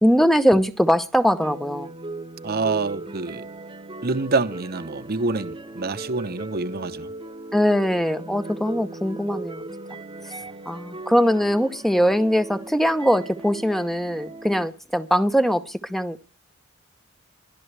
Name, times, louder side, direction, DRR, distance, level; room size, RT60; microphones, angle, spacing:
voice 1, 0.0-1.9 7.5-9.6 10.7-16.2, equal, ahead, 0.8 m, -21 dB
sound 1, 1.4-14.6, right 2 dB, 25° right, 1.0 m, -38 dB
voice 2, 2.4-3.4 4.0-7.1, right 3 dB, 50° right, 0.9 m, -26 dB
23.5 x 13.0 x 3.3 m
head